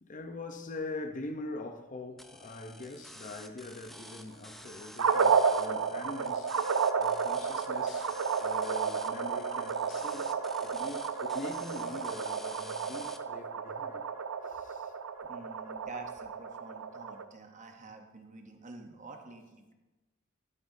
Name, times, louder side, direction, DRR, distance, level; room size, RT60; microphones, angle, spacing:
voice 1, 0.0-14.1 14.4-14.9, left 2 dB, 40° left, 0.7 m, -43 dB
sound 1, 2.2-13.2, equal, ahead, 0.5 m, -50 dB
sound 2, 5.0-17.2, right 6 dB, 90° right, 0.5 m, -31 dB
voice 2, 15.2-19.7, right 3 dB, 35° right, 0.9 m, -48 dB
12.0 x 9.4 x 2.7 m
head